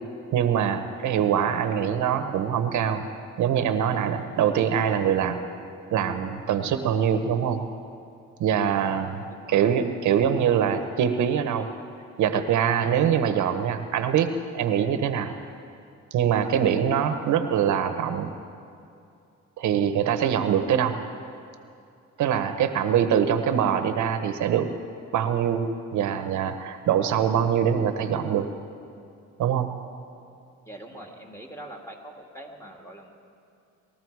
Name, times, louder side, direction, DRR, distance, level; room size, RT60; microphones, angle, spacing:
voice 1, 0.3-3.1 3.4-5.4 5.9-7.6 8.4-11.7 12.2-15.3 16.1-18.3 19.6-21.0 22.2-24.7 25.1-25.7 25.9-28.5 29.4-29.7, right 8 dB, 75° right, 9 dB, 0.9 m, -23 dB
voice 2, 30.7-33.1, right 1 dB, 10° left, 1 dB, 2.1 m, -43 dB
20.5 x 13.5 x 4.7 m, 2.5 s
cardioid pair, 90°, 30 cm